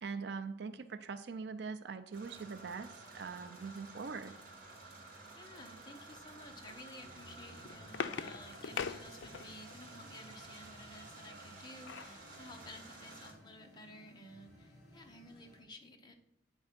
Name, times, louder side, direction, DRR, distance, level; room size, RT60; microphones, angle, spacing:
voice 1, 0.0-4.4, right 5 dB, 65° right, 10 dB, 0.4 m, -42 dB
sound 1, 2.1-13.3, right 3 dB, 45° right, 1.8 m, -53 dB
voice 2, 5.4-16.2, left 1 dB, 25° left, 3 dB, 0.8 m, -53 dB
sound 2, 7.0-15.6, left 1 dB, 55° left, 3.3 m, -59 dB
sound 3, 7.3-9.8 11.3-12.2 12.7-12.8 13.1-13.3, left 6 dB, 75° left, 0.4 m, -42 dB
8.7 x 3.6 x 5.8 m, 0.77 s
head